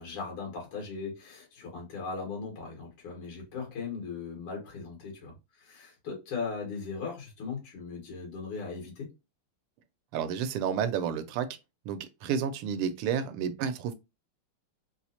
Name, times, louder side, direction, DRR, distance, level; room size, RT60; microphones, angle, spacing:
voice 1, 0.0-9.1, left 5 dB, 90° left, 2.3 m, -38 dB
voice 2, 10.1-11.5 11.9-13.9, right 7 dB, 85° right, 1.5 m, -30 dB
4.5 x 2.0 x 2.7 m
omnidirectional pair, 2.4 m